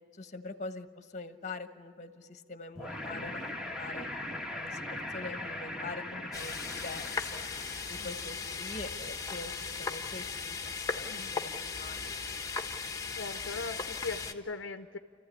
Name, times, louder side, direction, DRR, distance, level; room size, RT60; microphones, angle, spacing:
voice 1, 0.1-4.1 4.5-7.5 7.9-12.1, left 3 dB, 40° left, 10 dB, 1.2 m, -44 dB
sound 1, 2.8-8.2, left 1 dB, 5° right, 1.7 m, -40 dB
sound 2, 6.3-14.3, left 5 dB, 20° left, 1.3 m, -37 dB
voice 2, 11.0-11.3 13.2-15.0, left 3 dB, 65° left, 8 dB, 0.8 m, -40 dB
29.0 x 15.0 x 9.8 m, 2.3 s
head